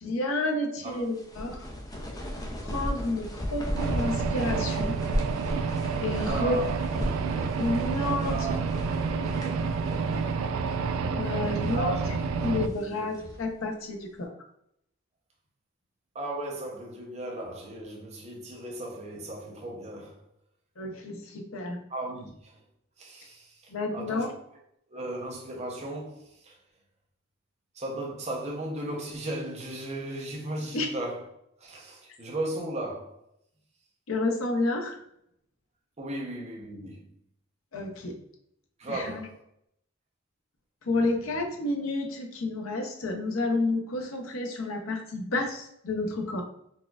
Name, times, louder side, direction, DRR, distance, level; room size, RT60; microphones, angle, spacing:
voice 1, 0.0-1.6 2.6-4.9 6.0-6.6 7.6-8.7 11.2-12.0 12.4-14.3 20.8-21.8 23.7-24.3 30.7-30.9 34.1-35.0 37.7-38.2 38.9-39.2 40.8-46.4, left 2 dB, 75° left, 0.6 m, -30 dB
sound 1, 0.9-10.4 10.7-10.8 11.4-11.9 12.4-13.5, equal, 20° left, 0.4 m, -36 dB
sound 2, 3.7-12.7, right 5 dB, 90° right, 0.3 m, -29 dB
voice 2, 6.2-7.6 8.1-8.7 9.3-9.7 11.7-12.0 12.7-13.0 16.1-20.2 21.9-22.6 23.0-24.3 24.9-26.6 27.7-31.2 31.6-33.2 36.0-37.0 38.8-39.4, right 1 dB, 30° right, 0.6 m, -36 dB
4.2 x 2.3 x 2.3 m
head